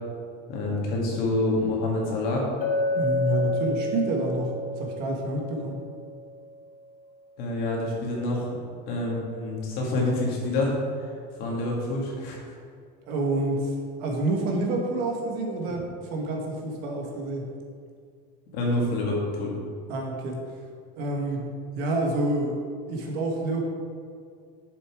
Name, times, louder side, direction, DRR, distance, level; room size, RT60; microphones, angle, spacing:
voice 1, 0.5-2.5 7.4-8.5 8.9-10.8 11.0-11.1 11.4-12.6 15.7-15.8 18.5-19.5, left 2 dB, 45° left, -2 dB, 2.0 m, -27 dB
Chink clink, 2.6-6.6, left 2 dB, 70° left, 1.5 m, -30 dB
voice 2, 2.9-5.8 13.1-17.5 19.9-20.6 21.0-21.5 21.8-22.6 22.9-23.6, right 2 dB, 50° right, 1 dB, 1.4 m, -28 dB
6.8 x 6.8 x 4.7 m, 2.1 s
cardioid pair, 175°, 21 cm